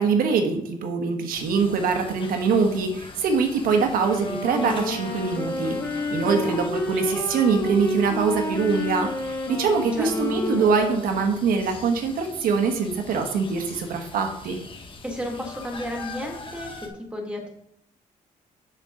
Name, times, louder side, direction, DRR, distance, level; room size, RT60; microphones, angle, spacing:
voice 1, 0.0-5.8 6.1-9.1 9.5-14.6, right 5 dB, 80° right, 5 dB, 1.2 m, -23 dB
sound 1, 1.3-16.9, left 3 dB, 35° left, 1.4 m, -43 dB
Wind instrument woodwind instrument, 4.0-11.6, left 1 dB, 20° left, 1.8 m, -30 dB
voice 2, 6.2-6.6 10.0-10.4 15.0-16.7 17.1-17.5, equal, 5° right, 1 dB, 1.9 m, -32 dB
7.2 x 6.7 x 3.7 m, 0.72 s
cardioid pair, 115°, 15 cm